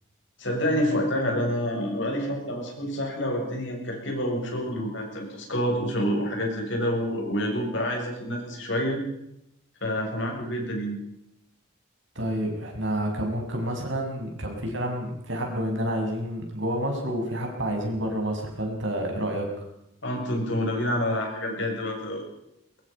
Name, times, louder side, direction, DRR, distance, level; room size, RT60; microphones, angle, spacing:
voice 1, 0.4-9.0 9.8-11.0 20.0-22.2, equal, 60° left, 1 dB, 7.4 m, -28 dB
voice 2, 12.1-19.6, equal, 60° right, 2 dB, 6.4 m, -29 dB
22.5 x 22.0 x 5.5 m, 0.82 s
head